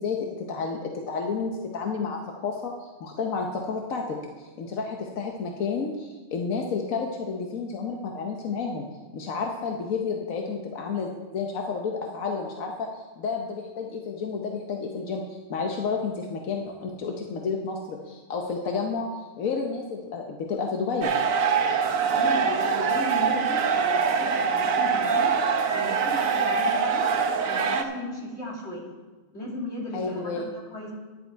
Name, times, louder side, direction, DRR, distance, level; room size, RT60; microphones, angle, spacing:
voice 1, 0.0-8.8 9.1-15.2 15.5-21.2 29.9-30.4, left 5 dB, 85° left, 1 dB, 1.3 m, -31 dB
sound 1, 21.0-27.8, right 5 dB, 80° right, 1.2 m, -24 dB
voice 2, 22.0-25.3 25.7-27.1 27.4-28.9 29.3-30.4 30.7-30.9, left 1 dB, 55° left, -5 dB, 3.0 m, -36 dB
10.5 x 10.5 x 4.6 m, 1.3 s
omnidirectional pair, 1.4 m